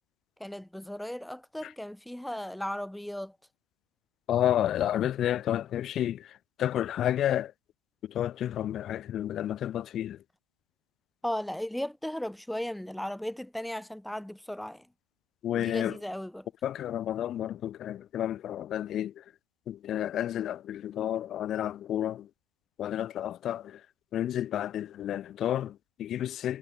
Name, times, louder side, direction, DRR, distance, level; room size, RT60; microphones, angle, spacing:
voice 1, 0.4-3.4 11.2-14.9 15.5-16.5, left 1 dB, ahead, 6.4 m, -36 dB
voice 2, 4.3-6.3 6.6-7.5 8.1-10.2 15.4-16.0 16.6-19.1 19.7-22.3 22.8-23.8 24.1-26.6, left 11 dB, 30° left, 2.9 m, -30 dB
figure-of-eight pair, 90°, 0 cm